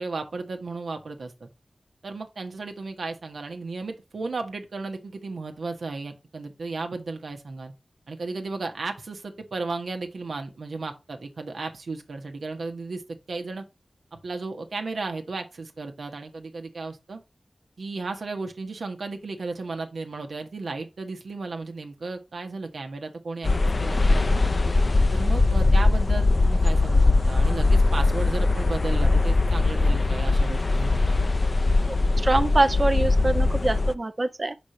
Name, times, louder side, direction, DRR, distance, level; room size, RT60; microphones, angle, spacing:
voice 1, 0.0-1.5 2.0-7.7 8.1-13.0 13.3-13.6 14.2-17.2 17.8-23.5 23.8-24.4 25.1-31.2, right 3 dB, 90° right, 1.2 m, -34 dB
sound 1, 23.4-33.9, left 3 dB, 50° left, 0.5 m, -21 dB
voice 2, 32.2-34.6, right 2 dB, 45° right, 0.5 m, -24 dB
5.3 x 5.1 x 4.2 m
cardioid pair, 50°, 0 cm